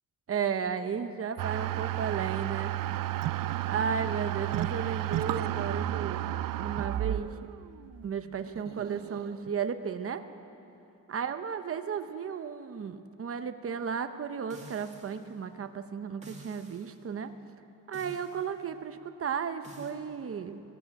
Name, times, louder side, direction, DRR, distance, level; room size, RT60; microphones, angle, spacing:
voice 1, 0.3-3.0 3.7-6.2 6.6-7.4 8.0-10.2 11.1-17.3 17.9-20.6, right 7 dB, 45° right, 9 dB, 0.9 m, -34 dB
sound 1, 1.4-9.5, right 13 dB, 85° right, 0.5 m, -32 dB
sound 2, 14.5-15.3 16.2-16.9 17.9-18.5 19.6-20.0, right 3 dB, 20° right, 2.2 m, -50 dB
18.0 x 16.0 x 9.2 m, 2.7 s
wide cardioid pair, 135°, 32 cm